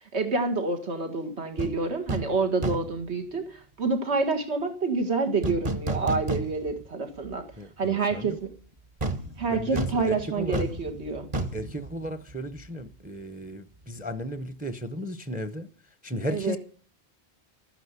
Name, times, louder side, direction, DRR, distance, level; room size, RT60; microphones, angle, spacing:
voice 1, 0.1-7.4 7.8-8.5 9.4-11.3 16.3-16.6, right 4 dB, 85° right, 2.1 m, -28 dB
sound 1, 1.6-1.8 2.1-2.4 2.6-3.0 5.4-6.9 7.2-7.3 9.0-12.7 12.9-13.1, right 2 dB, 35° right, 1.5 m, -32 dB
voice 2, 7.6-8.4 9.5-10.6 11.5-15.7 16.0-16.6, equal, 10° right, 0.6 m, -35 dB
13.0 x 10.0 x 8.2 m
omnidirectional pair, 1.1 m